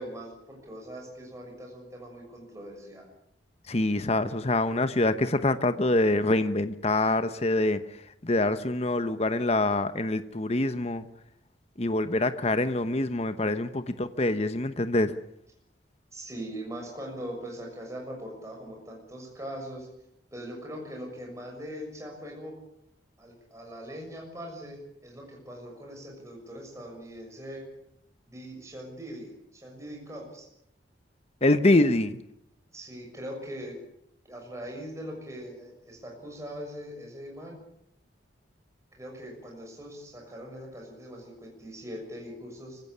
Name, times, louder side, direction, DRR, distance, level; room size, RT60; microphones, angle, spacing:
voice 1, 0.0-3.1 16.1-19.9 20.3-22.5 23.2-27.6 28.3-30.5 32.7-33.8 34.2-37.6 38.9-42.8, equal, 15° right, 0 dB, 6.6 m, -41 dB
voice 2, 3.7-7.8 8.2-11.1 11.8-15.1 31.4-32.2, left 2 dB, 35° left, 11 dB, 1.0 m, -25 dB
25.0 x 16.5 x 8.6 m, 0.75 s
head